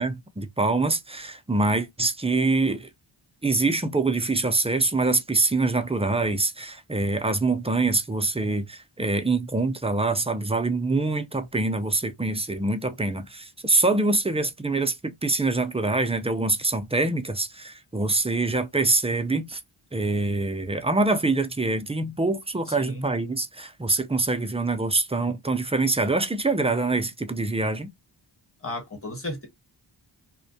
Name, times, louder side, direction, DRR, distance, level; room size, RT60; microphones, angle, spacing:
voice 1, 0.0-2.9 3.4-19.6 19.9-27.9, right 3 dB, 15° right, 0.3 m, -25 dB
voice 2, 22.7-23.1 28.6-29.5, left 1 dB, 30° left, 1.1 m, -34 dB
2.4 x 2.1 x 2.6 m
wide cardioid pair, 55°, 47 cm